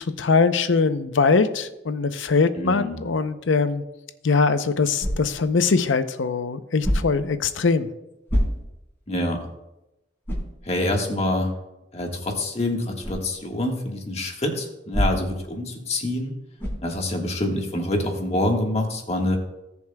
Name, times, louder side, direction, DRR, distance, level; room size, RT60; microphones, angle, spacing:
voice 1, 0.0-3.8 4.2-7.9, left 4 dB, 80° left, 11 dB, 0.6 m, -22 dB
voice 2, 2.6-3.1 9.1-9.4 10.6-11.5 11.9-16.4 16.8-19.4, left 1 dB, 35° left, 2 dB, 1.5 m, -26 dB
sound 1, 5.0-5.5 6.8-7.3 8.3-8.9 9.4-9.5 10.2-10.6 13.0-13.3 14.9-15.4 16.6-16.9, equal, 10° left, 3.3 m, -25 dB
18.5 x 7.1 x 2.2 m, 0.92 s
head